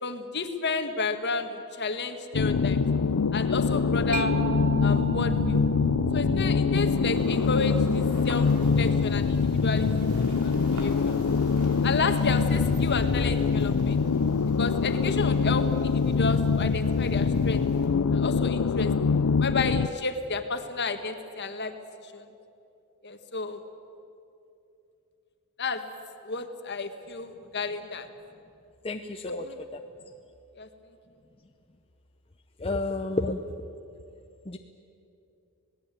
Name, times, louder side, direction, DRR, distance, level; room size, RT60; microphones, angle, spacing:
voice 1, 0.0-2.8 3.3-4.3 4.8-5.6 6.1-8.5 8.8-10.1 10.4-11.2 11.8-14.0 14.6-17.7 18.1-18.9 19.4-21.7 22.0-22.2 23.0-23.6 25.6-25.8 26.2-28.1 29.3-29.6 30.6-30.7, left 4 dB, 50° left, 7 dB, 1.7 m, -31 dB
sound 1, 2.3-19.9, left 5 dB, 75° left, 0.5 m, -24 dB
Mallet percussion, 4.1-11.4, right 3 dB, 35° right, 0.6 m, -37 dB
sound 2, 7.1-17.9, right 1 dB, 85° right, 4.5 m, -46 dB
voice 2, 28.8-29.4 32.6-33.4 34.5-34.6, left 2 dB, 25° left, 5 dB, 0.7 m, -30 dB
27.0 x 18.5 x 9.2 m, 2.7 s
head